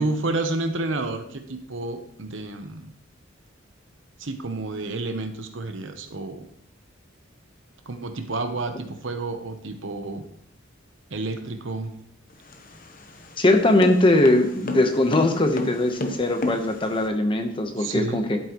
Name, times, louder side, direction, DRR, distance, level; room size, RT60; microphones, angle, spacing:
voice 1, 0.0-2.9 4.2-6.5 7.9-10.2 11.1-11.9 17.8-18.2, right 2 dB, 70° right, 7 dB, 0.9 m, -30 dB
sound 1, 12.3-17.1, left 3 dB, 45° left, 0.9 m, -32 dB
voice 2, 13.4-18.4, left 1 dB, 25° left, 5 dB, 1.0 m, -20 dB
11.0 x 8.8 x 3.1 m, 0.69 s
head